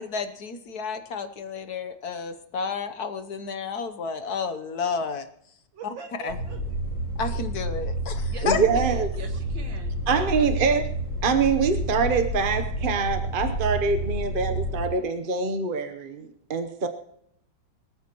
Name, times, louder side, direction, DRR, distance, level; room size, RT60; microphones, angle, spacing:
voice 1, 0.0-5.3 6.2-6.4 7.2-8.6, left 5 dB, 60° left, 9 dB, 1.3 m, -31 dB
voice 2, 5.7-6.6 8.3-10.8, right 5 dB, 75° right, 5 dB, 2.4 m, -43 dB
sound 1, 6.3-14.9, right 1 dB, 85° left, 5.2 m, -29 dB
voice 3, 8.4-9.1 10.1-10.8 11.2-16.9, right 5 dB, 45° right, 7 dB, 0.7 m, -24 dB
23.0 x 14.0 x 3.0 m, 0.71 s
omnidirectional pair, 2.1 m